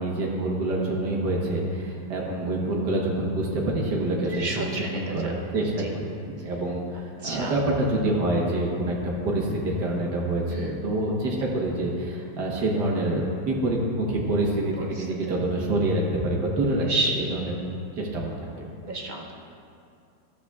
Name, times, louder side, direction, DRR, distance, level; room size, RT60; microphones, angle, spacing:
voice 1, 0.0-16.9 17.2-17.6 18.0-18.5, right 1 dB, 85° right, -3 dB, 1.8 m, -26 dB
voice 2, 4.3-5.3 5.8-5.9 7.2-7.5 10.5-10.8 14.8-15.3 16.8-17.2 18.8-19.3, right 2 dB, 40° right, -1 dB, 0.7 m, -31 dB
13.0 x 8.1 x 2.4 m, 2.5 s
omnidirectional pair, 1.8 m